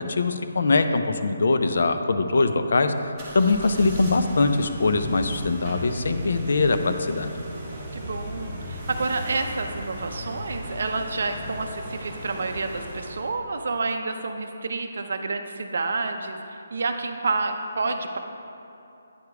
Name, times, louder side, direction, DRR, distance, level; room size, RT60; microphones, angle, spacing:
voice 1, 0.1-7.3, left 3 dB, 50° left, 8 dB, 0.5 m, -22 dB
sound 1, 3.1-13.3, equal, 10° right, 1.1 m, -36 dB
voice 2, 7.9-18.2, right 3 dB, 45° right, 6 dB, 0.6 m, -29 dB
9.5 x 5.0 x 4.7 m, 2.9 s
hypercardioid pair, 180°, 0 cm